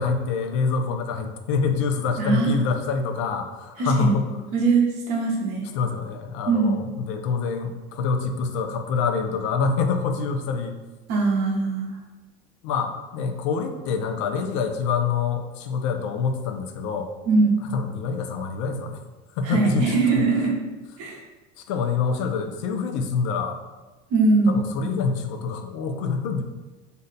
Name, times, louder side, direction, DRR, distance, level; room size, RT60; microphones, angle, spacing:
voice 1, 0.0-4.3 5.7-10.8 12.6-17.1 17.7-19.0 19.4-20.2 21.7-23.6 24.5-26.4, left 5 dB, 75° left, 6 dB, 0.4 m, -26 dB
voice 2, 2.2-2.7 3.8-4.1 4.5-5.7 6.5-6.8 11.1-11.9 17.2-17.5 19.4-20.5 21.0-21.2 24.1-24.7, right 4 dB, 45° right, -2 dB, 0.7 m, -21 dB
2.6 x 2.1 x 3.8 m, 1.2 s
cardioid pair, 175°, 15 cm